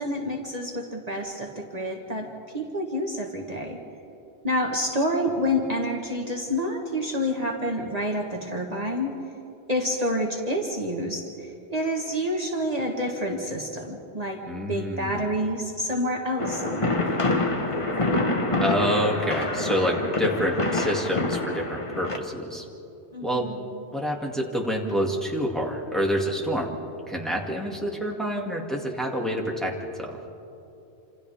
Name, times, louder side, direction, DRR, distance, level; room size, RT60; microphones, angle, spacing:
voice 1, 0.0-2.3 2.5-3.8 4.4-9.1 9.7-14.4 14.7-17.2 23.1-23.8, equal, 35° right, 0 dB, 1.6 m, -28 dB
voice 2, 14.5-15.2 18.6-22.6 23.2-23.5 23.9-26.7 27.1-30.2, equal, ahead, -2 dB, 2.3 m, -27 dB
sound 1, 16.4-22.2, left 2 dB, 30° left, 1.2 m, -26 dB
28.0 x 27.0 x 3.5 m, 2.8 s
omnidirectional pair, 1.1 m